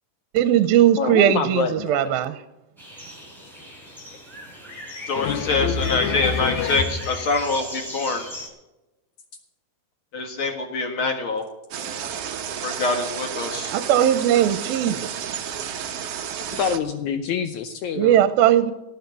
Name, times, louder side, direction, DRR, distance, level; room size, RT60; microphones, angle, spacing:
voice 1, 0.3-2.3 13.6-15.2 17.9-18.7, right 11 dB, 90° right, 12 dB, 2.5 m, -19 dB
voice 2, 1.0-2.2 5.1-7.1 16.6-18.1, left 7 dB, 80° left, 8 dB, 1.7 m, -26 dB
sound 1, 2.8-8.5, left 1 dB, ahead, 4.4 m, -38 dB
voice 3, 5.1-8.3 10.1-11.5 12.6-13.7, left 3 dB, 45° left, 4 dB, 1.9 m, -25 dB
sound 2, 11.7-16.8, right 8 dB, 65° right, 1.5 m, -31 dB
18.0 x 6.5 x 8.1 m, 0.99 s
omnidirectional pair, 4.3 m